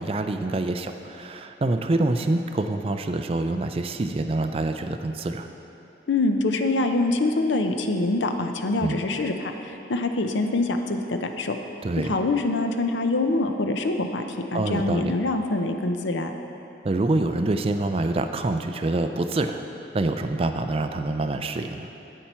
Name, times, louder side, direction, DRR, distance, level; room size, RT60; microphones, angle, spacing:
voice 1, 0.0-5.5 8.8-9.0 11.8-12.1 14.5-15.1 16.8-19.6 19.9-21.9, right 2 dB, 30° right, 7 dB, 0.3 m, -26 dB
voice 2, 6.1-11.6 12.0-14.2 14.5-16.3, left 2 dB, 75° left, 6 dB, 0.6 m, -25 dB
10.0 x 8.4 x 4.4 m, 2.9 s
head